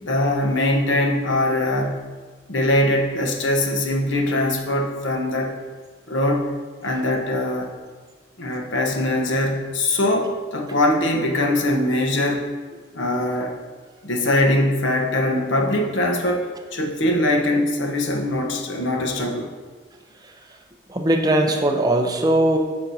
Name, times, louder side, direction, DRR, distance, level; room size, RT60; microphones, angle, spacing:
voice 1, 0.0-2.0 2.5-5.6 6.1-6.5 6.8-7.7 8.4-12.5 12.9-13.5 14.0-19.5, left 1 dB, 70° left, 1 dB, 0.9 m, -22 dB
voice 2, 20.9-22.6, right 1 dB, 20° right, 3 dB, 0.5 m, -20 dB
8.7 x 5.8 x 2.7 m, 1.5 s
head